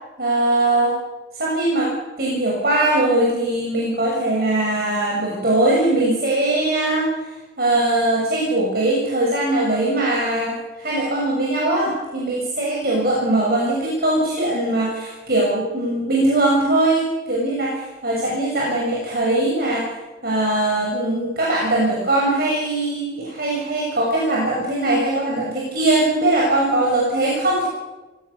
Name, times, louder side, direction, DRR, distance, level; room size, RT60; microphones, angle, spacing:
voice 1, 0.2-0.9 1.3-1.9 2.2-7.1 7.6-19.9 20.2-27.7, right 2 dB, 60° right, -3 dB, 6.7 m, -20 dB
28.0 x 18.5 x 7.1 m, 1.2 s
head